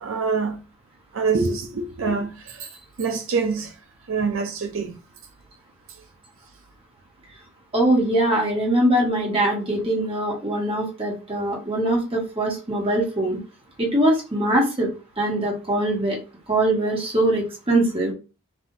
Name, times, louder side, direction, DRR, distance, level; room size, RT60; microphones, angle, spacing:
voice 1, 0.0-0.6 1.1-2.7 3.0-3.7 4.1-5.0, right 4 dB, 80° right, 0.5 m, -25 dB
voice 2, 7.7-13.4 13.8-14.9 15.2-16.2 16.5-18.1, right 1 dB, 25° right, 1.3 m, -22 dB
5.6 x 2.6 x 2.7 m
head